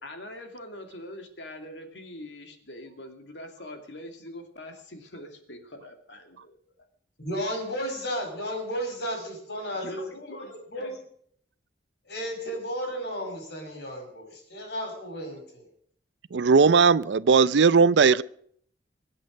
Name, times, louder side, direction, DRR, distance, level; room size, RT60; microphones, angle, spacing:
voice 1, 0.0-6.5 9.7-11.0, left 1 dB, 90° left, 5 dB, 2.6 m, -43 dB
voice 2, 7.2-10.4 10.7-10.9 12.1-15.7, equal, 70° left, 3 dB, 5.9 m, -33 dB
voice 3, 16.3-18.2, right 5 dB, 75° right, 16 dB, 0.5 m, -18 dB
23.0 x 8.6 x 6.4 m, 0.64 s
head